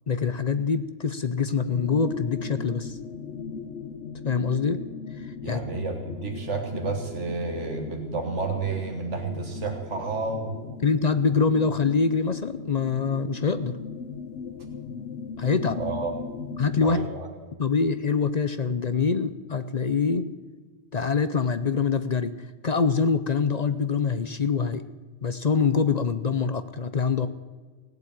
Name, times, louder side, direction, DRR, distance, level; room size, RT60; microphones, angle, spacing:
voice 1, 0.1-3.0 4.2-4.8 5.2-5.6 10.8-13.8 15.4-15.8 16.6-17.1 17.6-20.3 20.9-24.8 25.2-27.3, left 5 dB, 45° left, 11 dB, 0.6 m, -25 dB
sound 1, 1.7-16.9, left 5 dB, 75° left, 1.2 m, -38 dB
voice 2, 5.4-10.6 15.8-16.1 16.8-17.3, right 4 dB, 80° right, 3 dB, 1.7 m, -30 dB
17.5 x 8.0 x 8.8 m, 1.4 s
omnidirectional pair, 1.2 m